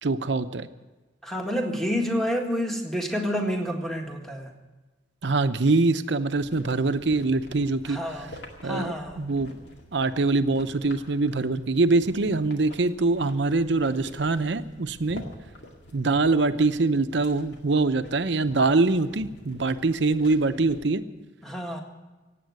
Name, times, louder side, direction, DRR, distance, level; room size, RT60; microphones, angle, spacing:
voice 1, 0.0-0.7 5.2-8.0 8.6-9.5 9.9-15.2 15.9-21.0, right 3 dB, 70° right, 11 dB, 0.7 m, -24 dB
voice 2, 1.2-4.5 7.9-8.3 8.6-9.3 21.4-21.8, equal, ahead, 2 dB, 1.7 m, -29 dB
sound 1, 6.3-20.9, left 1 dB, 65° left, 2.2 m, -47 dB
17.0 x 8.5 x 9.3 m, 1.2 s
head